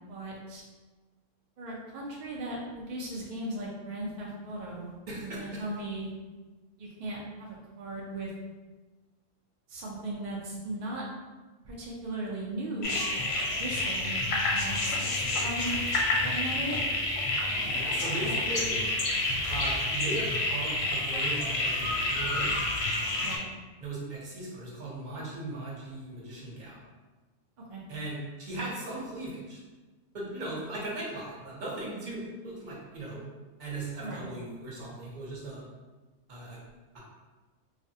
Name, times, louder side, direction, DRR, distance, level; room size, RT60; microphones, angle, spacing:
voice 1, 0.1-0.6 1.6-5.0 5.2-6.1 6.8-8.3 9.7-11.0 11.6-13.0 13.4-14.2 14.5-15.1 15.4-15.8 16.1-16.8 23.2-23.5 27.7-27.8 34.0-34.3, right 1 dB, 70° right, -4 dB, 0.4 m, -37 dB
voice 2, 5.1-5.6 17.6-18.8 19.5-22.5 23.8-26.8 27.9-29.6 30.1-33.2 33.6-35.6 36.3-36.6 36.9-37.0, right 2 dB, 45° right, -5 dB, 0.8 m, -38 dB
sound 1, 12.8-23.4, left 2 dB, 65° left, 0.7 m, -29 dB
3.2 x 2.0 x 2.6 m, 1.3 s
omnidirectional pair, 1.3 m